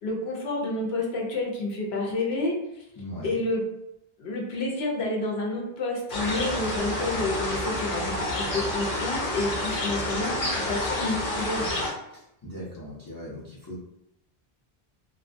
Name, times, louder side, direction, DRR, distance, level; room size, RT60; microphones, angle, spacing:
voice 1, 0.0-2.6 3.2-3.6 4.2-11.7, left 2 dB, 85° left, -1 dB, 0.9 m, -29 dB
voice 2, 3.0-3.4 12.1-13.8, equal, 35° left, -6 dB, 0.4 m, -39 dB
sound 1, 6.1-11.9, left 1 dB, 60° left, 0.8 m, -29 dB
2.3 x 2.2 x 2.5 m, 0.84 s
omnidirectional pair, 1.0 m